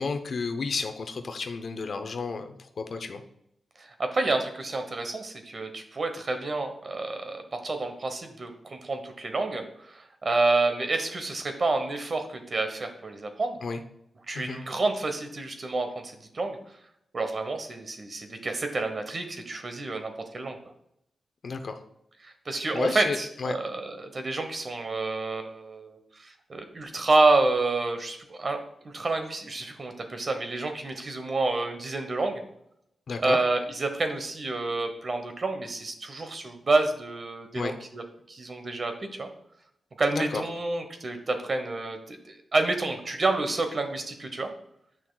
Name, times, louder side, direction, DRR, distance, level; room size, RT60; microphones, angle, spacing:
voice 1, 0.0-3.2 13.6-13.8 14.3-14.6 21.4-21.8 22.7-23.6 33.1-33.4 37.5-37.7 40.1-40.4, left 4 dB, 60° left, 7 dB, 0.7 m, -32 dB
voice 2, 3.8-13.6 14.3-16.6 17.1-20.6 22.2-28.6 28.9-32.4 33.2-38.0 38.3-39.3 40.0-44.5, right 3 dB, 45° right, 6 dB, 1.0 m, -29 dB
8.0 x 5.9 x 2.3 m, 0.76 s
cardioid pair, 75°, 0 cm